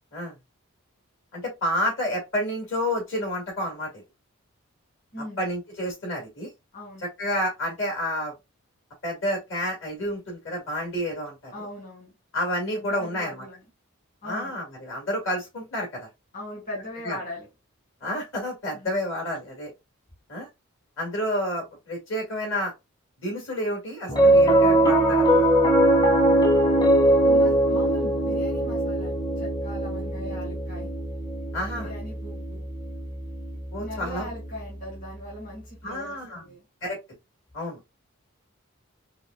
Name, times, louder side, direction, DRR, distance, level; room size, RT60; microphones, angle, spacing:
voice 1, 1.3-4.0 5.4-6.5 7.2-8.3 9.0-11.7 12.3-13.4 14.2-16.1 17.0-17.2 18.0-19.7 20.3-20.5 21.0-22.7 23.2-25.4 31.5-31.9 33.7-34.3 35.8-36.4 36.8-37.0 37.5-37.8, equal, 65° left, 2.3 m, -30 dB
voice 2, 6.7-7.1 11.5-12.1 12.7-13.6 14.2-14.5 16.3-17.5 18.7-19.0 27.2-30.9 31.7-32.7 33.8-36.6, equal, 40° left, 1.7 m, -39 dB
Piano, 24.1-34.6, right 1 dB, 20° left, 0.6 m, -21 dB
5.4 x 2.4 x 2.3 m
head